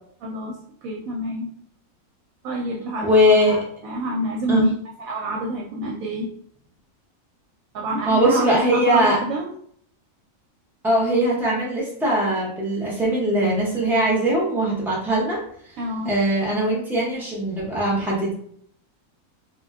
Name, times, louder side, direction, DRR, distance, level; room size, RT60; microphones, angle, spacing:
voice 1, 0.2-0.5 0.8-1.5 2.4-4.7 5.0-6.3 7.7-9.5 15.8-16.1, right 1 dB, 70° right, -1 dB, 0.9 m, -27 dB
voice 2, 3.0-3.6 4.5-4.6 8.1-9.2 10.8-15.4 16.0-18.3, equal, 5° right, -5 dB, 0.4 m, -20 dB
2.5 x 2.1 x 3.4 m, 0.64 s
omnidirectional pair, 1.6 m